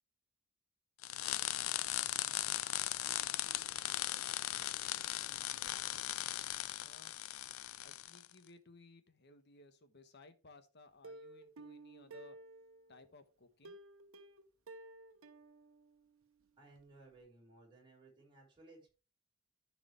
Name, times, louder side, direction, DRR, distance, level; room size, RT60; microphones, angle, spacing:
sound 1, 1.0-8.2, left 14 dB, 90° left, 0.5 m, -38 dB
voice 1, 6.8-7.2 7.8-12.4 12.9-13.8, left 3 dB, 55° left, 1.3 m, -60 dB
Plucked string instrument, 11.0-13.0 13.6-16.4 16.8-16.9 17.2-17.3, right 2 dB, 90° right, 1.0 m, -54 dB
voice 2, 16.6-18.9, right 2 dB, 25° right, 4.7 m, -60 dB
14.0 x 4.8 x 3.3 m
head